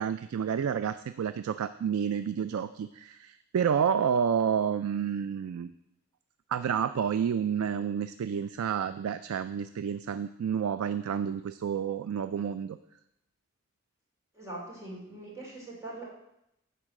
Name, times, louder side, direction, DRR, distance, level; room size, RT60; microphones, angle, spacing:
voice 1, 0.0-5.7 6.5-12.8, right 7 dB, 90° right, 12 dB, 0.3 m, -30 dB
voice 2, 14.3-16.0, right 2 dB, 15° right, -5 dB, 2.8 m, -42 dB
10.0 x 4.0 x 7.5 m, 0.83 s
head